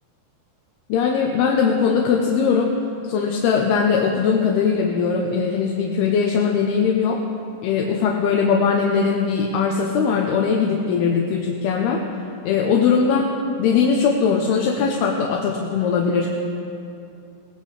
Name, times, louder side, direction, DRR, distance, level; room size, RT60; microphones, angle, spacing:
voice 1, 0.9-2.7 3.1-7.2 7.6-12.0 12.4-13.3 13.6-16.6, left 6 dB, 75° left, 1 dB, 2.5 m, -20 dB
22.5 x 18.5 x 3.3 m, 2.7 s
omnidirectional pair, 5.3 m